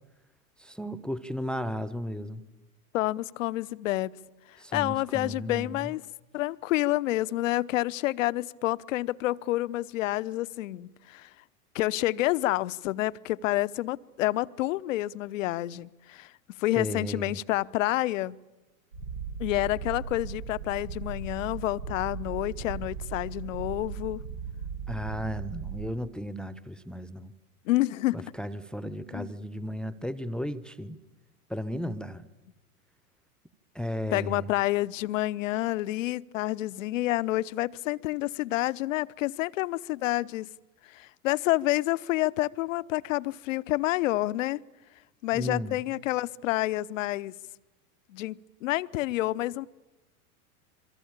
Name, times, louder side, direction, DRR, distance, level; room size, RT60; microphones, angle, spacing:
voice 1, 0.6-2.4 4.6-5.9 16.8-17.4 24.9-27.3 28.1-31.0 31.5-32.2 33.7-34.5 45.3-45.8, equal, ahead, 1.0 m, -35 dB
voice 2, 2.9-4.1 4.7-6.0 6.3-11.3 11.7-16.3 16.6-18.4 19.4-24.2 27.7-28.2 29.1-29.3 34.1-40.5 40.9-44.6 45.2-47.3 48.1-49.7, left 17 dB, 60° left, 0.9 m, -28 dB
Purr, 18.9-25.9, right 6 dB, 90° right, 6.4 m, -37 dB
27.5 x 23.5 x 8.9 m
figure-of-eight pair, 90°, 44 cm